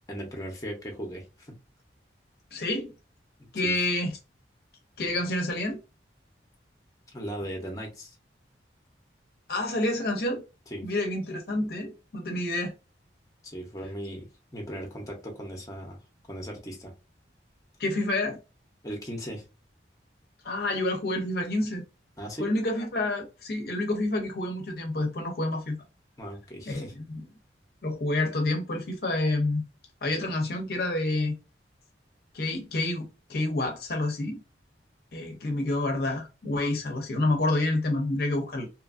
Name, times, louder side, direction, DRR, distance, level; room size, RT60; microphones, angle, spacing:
voice 1, 0.1-1.5 3.5-3.7 7.1-8.1 10.7-10.9 13.4-14.3 14.5-16.0 16.3-16.9 18.8-19.4 22.2-22.5 26.2-26.9, equal, 20° left, 0.7 m, -37 dB
voice 2, 2.5-2.9 3.5-4.2 5.0-5.8 9.5-10.4 10.8-12.7 17.8-18.4 20.4-21.8 22.4-25.8 26.7-26.8 27.1-27.2 27.8-29.6 30.0-31.4 32.3-34.4 35.1-38.7, left 2 dB, 55° left, 0.6 m, -28 dB
2.8 x 2.4 x 2.4 m
head